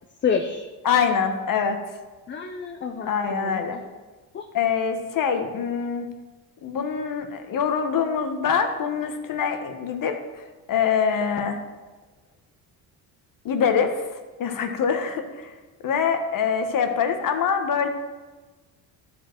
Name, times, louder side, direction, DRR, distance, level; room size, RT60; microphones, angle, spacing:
voice 1, 0.2-0.7 2.3-3.8 4.3-4.4, left 6 dB, 30° left, 4 dB, 0.6 m, -28 dB
voice 2, 0.8-1.8 3.1-3.8 4.5-6.1 6.6-10.1 10.7-11.6 13.4-13.9 14.4-15.5 15.8-17.9, left 6 dB, 55° left, 6 dB, 1.1 m, -24 dB
12.5 x 5.2 x 4.5 m, 1.3 s
cardioid pair, 115°, 41 cm